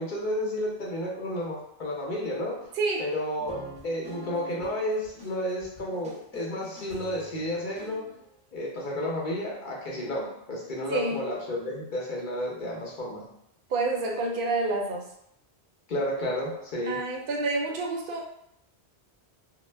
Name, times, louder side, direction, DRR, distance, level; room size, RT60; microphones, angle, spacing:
voice 1, 0.0-2.6 3.0-8.0 8.5-13.2 15.9-17.0, left 1 dB, 50° left, -3 dB, 0.7 m, -31 dB
voice 2, 2.7-3.1 10.9-11.2 13.7-15.0 16.9-18.3, right 3 dB, 60° right, 0 dB, 0.7 m, -28 dB
sound 1, 3.4-8.3, right 1 dB, 10° right, 0.4 m, -46 dB
2.2 x 2.0 x 3.2 m, 0.76 s
omnidirectional pair, 1.1 m